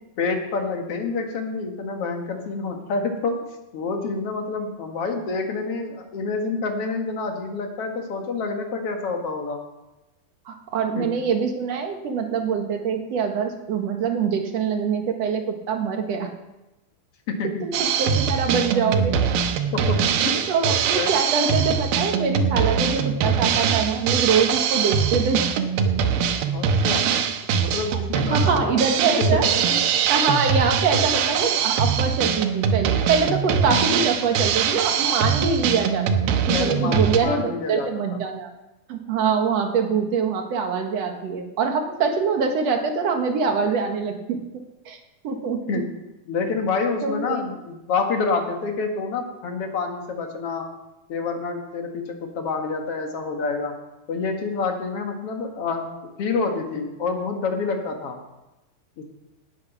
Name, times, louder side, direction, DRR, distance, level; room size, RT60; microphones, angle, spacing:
voice 1, 0.2-3.4 3.7-9.6 11.0-11.1 17.3-17.6 19.7-20.0 20.2-20.4 20.9-21.1 26.5-27.1 27.6-28.8 29.3-29.4 29.7-29.8 36.5-38.2 45.7-45.8 46.3-50.7 51.1-53.7 54.1-55.9 56.2-58.2 59.0-59.1, left 4 dB, 50° left, 3 dB, 2.1 m, -27 dB
voice 2, 10.5-16.3 17.6-19.2 20.5-25.4 27.9-28.0 28.3-29.5 30.1-38.5 38.9-45.0 45.2-45.8 47.0-47.5, right 5 dB, 55° right, 4 dB, 2.1 m, -24 dB
Drum kit, 17.7-37.2, right 7 dB, 80° right, 2.8 m, -22 dB
18.0 x 8.6 x 6.0 m, 1.0 s
omnidirectional pair, 4.3 m